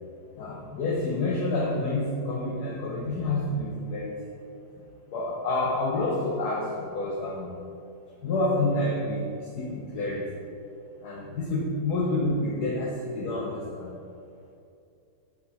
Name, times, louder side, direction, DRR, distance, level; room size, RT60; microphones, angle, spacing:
voice 1, 0.4-4.2 5.1-7.5 8.2-10.5 11.0-13.9, left 2 dB, 55° left, -3 dB, 1.3 m, -28 dB
7.4 x 6.7 x 4.1 m, 2.5 s
omnidirectional pair, 2.4 m